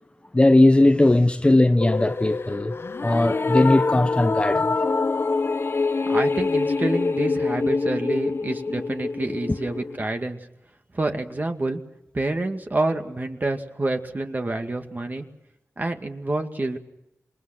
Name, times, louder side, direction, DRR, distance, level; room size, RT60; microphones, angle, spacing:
voice 1, 0.3-2.7 3.0-4.8, left 1 dB, 20° left, 0.8 m, -18 dB
sound 1, 1.8-10.0, left 3 dB, 50° left, 0.8 m, -25 dB
voice 2, 6.1-10.5 10.9-11.8 12.1-15.3 15.8-16.8, right 2 dB, 35° right, 2.2 m, -28 dB
27.5 x 22.0 x 6.0 m
wide cardioid pair, 100°, 5 cm